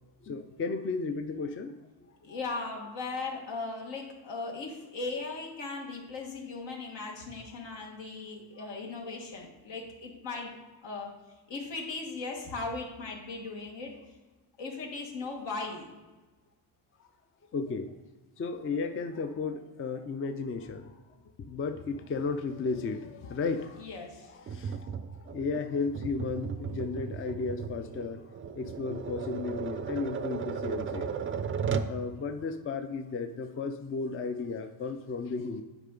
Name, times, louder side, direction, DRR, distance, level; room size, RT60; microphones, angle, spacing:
voice 1, 0.2-1.7 2.3-2.6 10.6-10.7 11.8-11.9 15.2-15.3 17.5-17.9 18.4-20.9 21.5-23.9 24.2-28.2 28.6-31.2 31.9-35.6, left 4 dB, 30° left, 7 dB, 0.5 m, -34 dB
voice 2, 2.2-11.1 11.5-14.0 14.6-15.9 23.8-24.3, left 3 dB, 75° left, 0 dB, 1.8 m, -38 dB
Tap, 24.5-32.0, right 6 dB, 30° right, 0.4 m, -35 dB
9.0 x 4.6 x 3.8 m, 1.2 s
cardioid pair, 105°, 44 cm